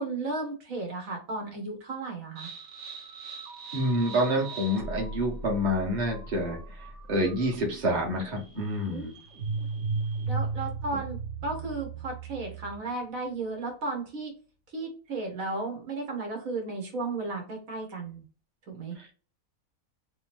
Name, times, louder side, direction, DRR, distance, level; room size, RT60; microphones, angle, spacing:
voice 1, 0.0-2.5 8.8-9.1 10.3-14.3 14.7-18.2 18.7-18.9, right 3 dB, 75° right, 1 dB, 1.6 m, -34 dB
sound 1, 2.4-13.0, right 4 dB, 60° right, 1.2 m, -37 dB
voice 2, 3.7-6.6 7.1-9.1, equal, 35° right, -1 dB, 1.2 m, -27 dB
3.5 x 2.9 x 3.4 m, 0.37 s
omnidirectional pair, 1.5 m